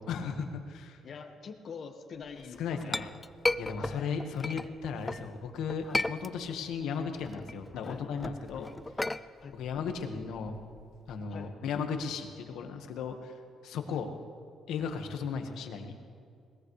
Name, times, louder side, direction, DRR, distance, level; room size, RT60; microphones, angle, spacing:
voice 1, 0.0-1.0 2.6-3.1 3.6-8.7 9.0-9.1 9.5-10.5 11.1-13.3 13.6-14.1 14.7-15.9, left 6 dB, 85° left, 5 dB, 1.5 m, -36 dB
voice 2, 1.0-3.1 3.7-4.1 5.8-6.0 7.8-8.0 9.4-9.6 11.3-11.5 13.9-14.0, left 5 dB, 55° left, 6 dB, 1.5 m, -45 dB
Chink clink, 2.4-5.3 5.7-6.7 7.1-11.2, left 2 dB, 15° left, 0.4 m, -35 dB
20.5 x 19.5 x 3.3 m, 2.3 s
cardioid pair, 90°, 0 cm